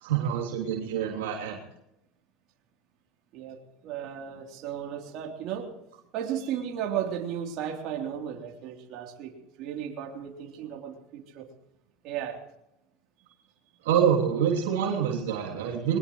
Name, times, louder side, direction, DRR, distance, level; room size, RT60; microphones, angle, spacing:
voice 1, 0.0-1.6 13.8-16.0, right 8 dB, 90° right, -1 dB, 3.0 m, -26 dB
voice 2, 3.3-5.7 6.1-9.3 9.6-11.5 12.0-12.4, right 9 dB, 60° right, 1 dB, 3.5 m, -35 dB
22.0 x 21.0 x 3.2 m, 0.85 s
supercardioid pair, 105°, 0 cm